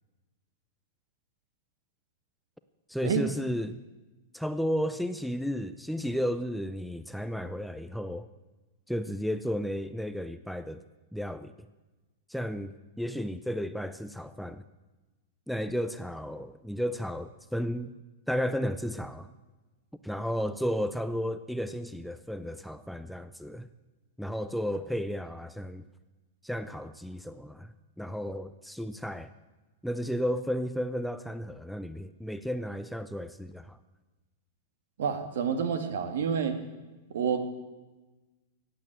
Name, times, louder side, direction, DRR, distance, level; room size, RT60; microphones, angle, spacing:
voice 1, 2.9-3.8 4.3-8.3 8.9-10.8 11.1-11.5 12.3-14.6 15.5-17.9 18.3-19.3 20.0-23.7 24.2-25.8 26.4-29.3 29.8-33.8, equal, ahead, 11 dB, 0.4 m, -33 dB
voice 2, 35.0-36.6 37.1-37.4, right 6 dB, 70° right, 9 dB, 2.0 m, -28 dB
15.0 x 8.7 x 9.0 m, 1.2 s
supercardioid pair, 165°, 0 cm